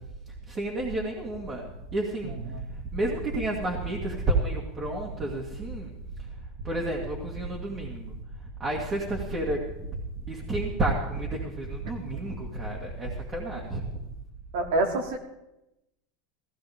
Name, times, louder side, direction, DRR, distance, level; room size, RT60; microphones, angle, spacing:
voice 1, 0.5-2.4 2.9-5.9 6.6-8.2 8.6-13.9, right 2 dB, 25° right, -2 dB, 2.3 m, -30 dB
voice 2, 2.2-2.6 12.1-12.2 14.5-15.2, right 2 dB, 75° right, 3 dB, 2.9 m, -28 dB
16.5 x 15.5 x 3.7 m, 0.90 s
supercardioid pair, 140°, 0 cm